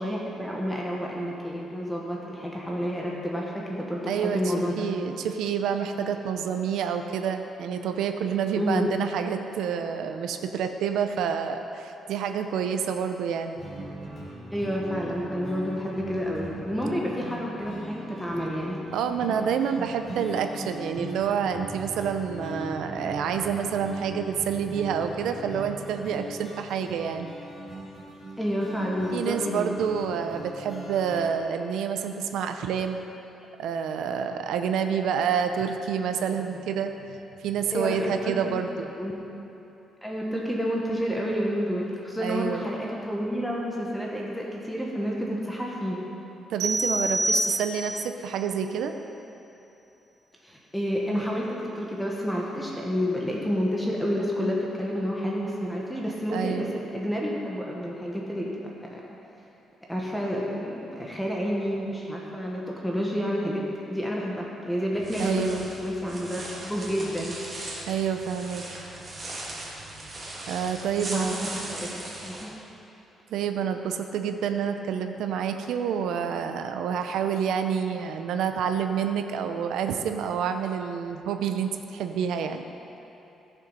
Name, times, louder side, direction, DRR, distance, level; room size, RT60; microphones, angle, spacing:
voice 1, 0.0-4.9 8.6-8.9 14.5-18.8 28.4-29.7 37.7-38.5 39.0-39.1 40.0-46.0 50.4-58.5 58.9-59.0 59.9-63.6 63.9-67.4 71.1-72.5, equal, 5° left, -3 dB, 1.1 m, -29 dB
voice 2, 4.1-13.6 17.2-17.4 18.9-27.3 29.1-33.0 33.6-38.9 42.2-42.7 46.5-48.9 56.3-56.7 65.2-65.7 67.9-68.8 70.5-71.4 73.3-82.6, right 7 dB, 90° right, 7 dB, 0.6 m, -28 dB
sound 1, 13.6-31.4, right 1 dB, 30° left, 3.0 m, -39 dB
sound 2, 46.6-48.1, right 1 dB, 70° right, 2.8 m, -27 dB
sound 3, 64.9-72.4, right 2 dB, 25° right, 2.0 m, -38 dB
15.0 x 7.1 x 5.4 m, 3.0 s
cardioid pair, 165°, 0 cm